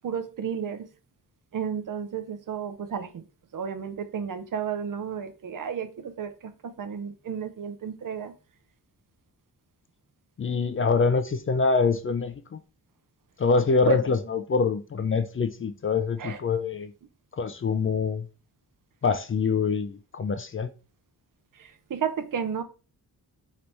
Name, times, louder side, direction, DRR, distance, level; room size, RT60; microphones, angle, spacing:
voice 1, 0.0-0.9 1.5-3.2 3.5-8.3 13.9-14.0 16.2-16.4 21.5-22.6, right 7 dB, 55° right, 0.6 m, -32 dB
voice 2, 10.4-12.6 13.4-16.9 17.4-18.3 19.0-20.7, left 4 dB, 35° left, 0.4 m, -25 dB
3.3 x 3.1 x 4.0 m
cardioid pair, 80°, 39 cm